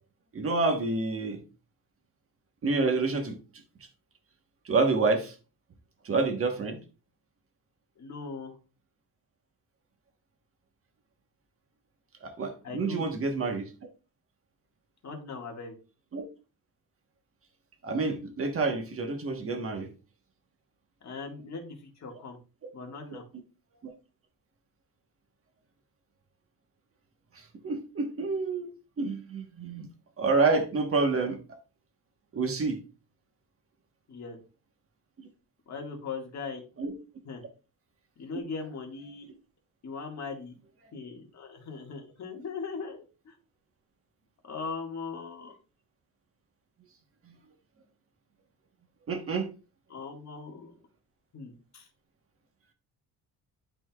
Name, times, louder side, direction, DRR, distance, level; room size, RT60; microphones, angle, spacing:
voice 1, 0.3-1.4 2.6-3.4 4.6-5.3 6.0-6.8 12.2-13.7 16.1-16.2 17.8-19.9 23.8-23.9 27.6-28.7 29.0-29.9 30.2-31.4 32.3-32.8 36.8-36.9 49.1-49.5, right 3 dB, 35° right, 6 dB, 1.2 m, -28 dB
voice 2, 8.0-8.6 12.6-13.0 15.0-15.7 21.0-22.4 22.7-23.2 34.1-34.4 35.7-36.6 37.2-37.4 38.2-39.3 39.8-40.6 40.9-43.3 44.4-45.6 49.9-50.7 51.3-51.9, left 4 dB, 40° left, 1 dB, 1.9 m, -39 dB
11.0 x 4.3 x 2.3 m, 0.33 s
cardioid pair, 150°, 40 cm